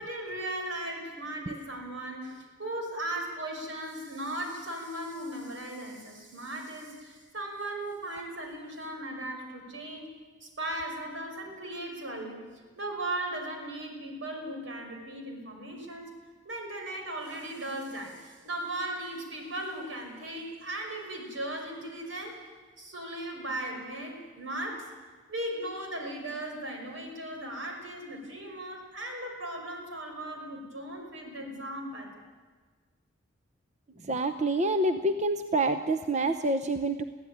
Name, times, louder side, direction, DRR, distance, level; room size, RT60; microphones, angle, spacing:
voice 1, 0.0-10.1 10.4-16.1 16.4-22.4 22.8-24.9 25.3-32.3, right 1 dB, 80° right, 2 dB, 5.8 m, -37 dB
voice 2, 34.1-37.0, right 2 dB, 35° right, 8 dB, 0.8 m, -27 dB
25.5 x 16.0 x 9.9 m, 1.5 s
head